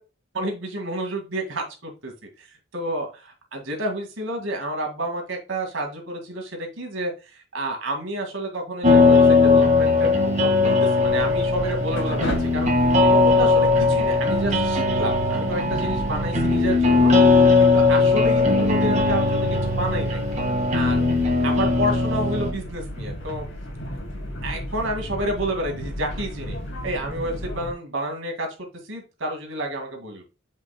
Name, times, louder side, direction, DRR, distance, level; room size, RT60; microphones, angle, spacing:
voice 1, 0.3-20.2 20.7-23.4 24.4-26.6 26.8-30.2, right 1 dB, 80° right, 2 dB, 2.0 m, -30 dB
sound 1, 8.8-22.5, left 3 dB, 35° right, 1.6 m, -19 dB
sound 2, 11.0-27.7, equal, 65° left, 2.0 m, -34 dB
8.0 x 5.3 x 2.2 m, 0.31 s
head